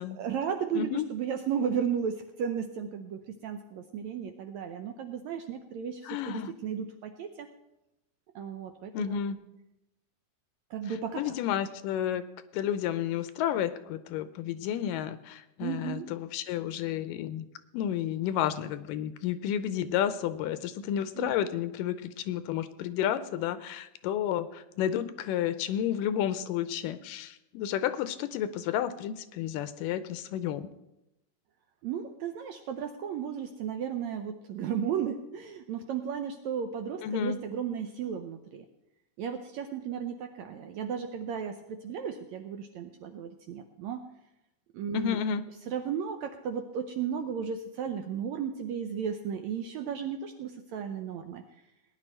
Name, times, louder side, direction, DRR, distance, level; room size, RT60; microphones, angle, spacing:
voice 1, 0.2-7.5 8.4-9.2 10.7-11.3 15.6-16.1 21.2-21.3 31.8-38.7 39.2-44.0 44.7-45.2 45.7-51.4, right 7 dB, 80° right, 6 dB, 1.7 m, -34 dB
voice 2, 0.7-1.1 6.0-6.5 8.9-9.4 11.2-12.2 12.5-17.5 17.7-30.7 37.0-37.4 44.9-45.4, left 10 dB, 85° left, 12 dB, 2.3 m, -31 dB
18.5 x 10.0 x 4.4 m, 0.90 s
omnidirectional pair, 3.9 m